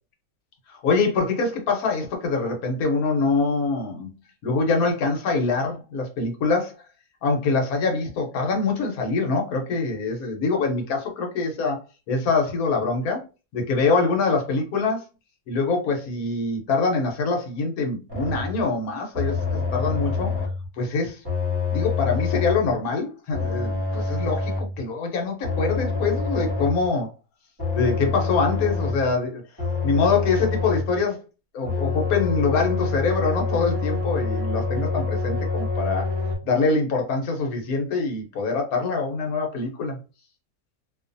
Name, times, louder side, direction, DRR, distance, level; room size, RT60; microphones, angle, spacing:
voice 1, 0.7-4.1 4.4-6.7 7.2-11.8 12.1-13.2 13.5-15.0 15.5-20.3 20.8-21.2 21.7-27.1 27.7-29.4 29.8-31.2 31.5-36.1 36.4-40.0, left 4 dB, 65° left, 1.2 m, -24 dB
sound 1, 18.1-18.6 19.1-20.7 21.2-22.7 23.3-24.8 25.4-26.9 27.6-29.1 29.6-31.0 31.6-36.4, left 4 dB, 20° right, 0.8 m, -26 dB
2.7 x 2.4 x 2.5 m
omnidirectional pair, 1.8 m